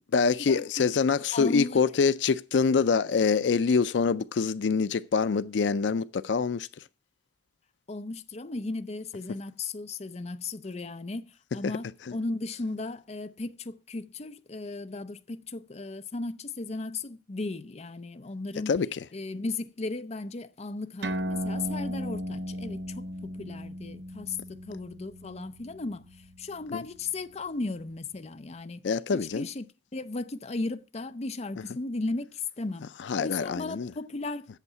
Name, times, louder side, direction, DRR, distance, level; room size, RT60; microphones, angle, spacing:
voice 1, 0.1-6.7 12.1-12.2 18.7-19.0 26.7-26.8 28.8-29.5 33.1-33.9, left 5 dB, 80° left, 0.4 m, -25 dB
voice 2, 1.3-1.8 7.9-18.7 19.1-29.7 29.9-34.5, left 3 dB, 35° left, 0.6 m, -36 dB
sound 1, 21.0-27.9, equal, 70° right, 0.9 m, -37 dB
8.2 x 7.2 x 8.1 m
head